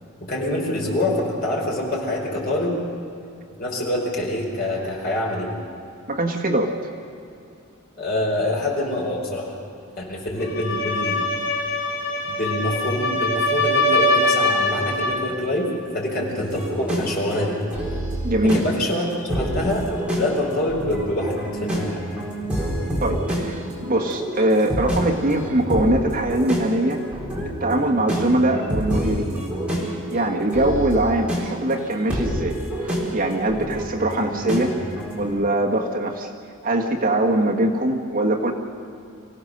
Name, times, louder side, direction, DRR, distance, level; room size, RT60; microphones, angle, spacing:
voice 1, 0.2-2.8 3.6-5.5 8.0-9.5 10.0-11.3 12.3-17.6 18.4-19.0 19.3-22.0, left 1 dB, 45° left, -2 dB, 4.7 m, -25 dB
voice 2, 6.1-6.7 18.2-18.6 23.0-27.0 27.6-29.4 30.1-32.6 32.8-34.8 35.2-36.3 36.6-38.5, right 1 dB, 40° right, 1 dB, 1.6 m, -22 dB
sound 1, 10.4-15.3, left 1 dB, 70° left, 3.0 m, -22 dB
sound 2, 16.4-35.3, equal, 5° right, 4.0 m, -28 dB
25.0 x 16.5 x 6.6 m, 2.6 s
head